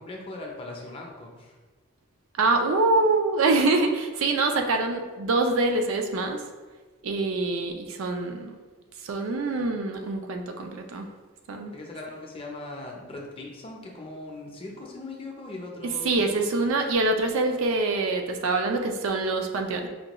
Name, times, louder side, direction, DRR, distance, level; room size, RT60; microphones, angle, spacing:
voice 1, 0.0-1.6 11.7-16.5, left 2 dB, 25° left, -1 dB, 0.5 m, -39 dB
voice 2, 2.4-6.4 7.0-8.6 9.0-11.1 11.5-11.7 16.0-19.9, right 3 dB, 70° right, 4 dB, 0.4 m, -25 dB
5.1 x 2.2 x 2.9 m, 1.3 s
head